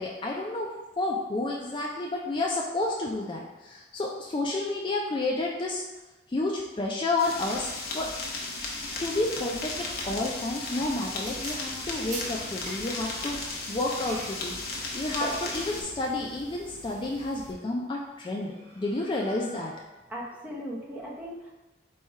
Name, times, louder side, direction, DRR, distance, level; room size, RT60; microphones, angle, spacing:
voice 1, 0.0-5.8 6.3-7.7 7.9-8.1 9.0-14.6 14.9-19.7, left 2 dB, 30° left, -2 dB, 0.3 m, -30 dB
sound 1, 7.2-15.8, left 3 dB, 60° left, 0.7 m, -35 dB
sound 2, 8.9-17.5, right 1 dB, 45° right, 1.0 m, -43 dB
sound 3, 14.5-16.1 18.0-20.0, equal, 80° right, 1.2 m, -53 dB
voice 2, 20.1-21.5, equal, 10° right, -5 dB, 0.7 m, -38 dB
4.2 x 2.3 x 4.5 m, 1.1 s
head